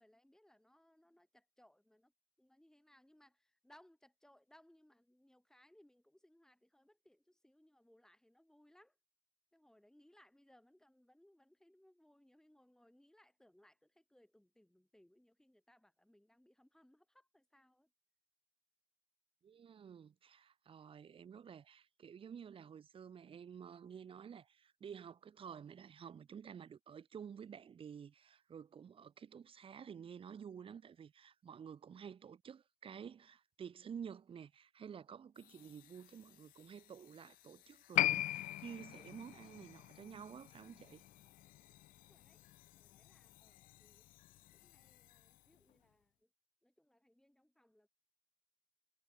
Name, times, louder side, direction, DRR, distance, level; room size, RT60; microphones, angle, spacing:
voice 1, 0.0-2.1 2.4-9.0 9.5-17.9 42.1-42.4 42.8-44.1 44.5-46.3 46.6-47.9, left 1 dB, 5° left, 5.5 m, -68 dB
voice 2, 19.4-41.0, right 7 dB, 40° right, 1.6 m, -51 dB
sound 1, 35.3-45.9, left 17 dB, 90° left, 6.0 m, -66 dB
Piano, 37.9-44.9 45.2-45.3, left 14 dB, 65° left, 0.5 m, -40 dB
cardioid pair, 110°, 14 cm